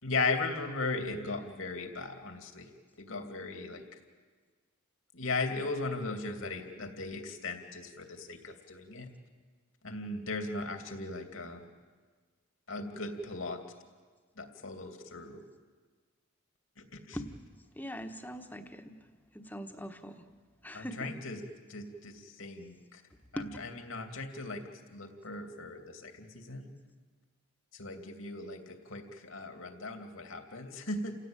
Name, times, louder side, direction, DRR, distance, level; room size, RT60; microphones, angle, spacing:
voice 1, 0.0-2.7 3.0-3.8 5.1-9.0 9.8-11.6 12.7-13.6 14.4-15.4 16.8-17.2 20.7-21.4 21.7-23.0 23.3-24.6 24.9-26.7 27.7-31.2, left 3 dB, 75° left, 5 dB, 2.8 m, -37 dB
voice 2, 17.8-19.0 19.3-20.2 20.6-21.2 23.4-23.5, equal, 10° left, 6 dB, 1.3 m, -41 dB
29.5 x 17.0 x 9.1 m, 1.5 s
head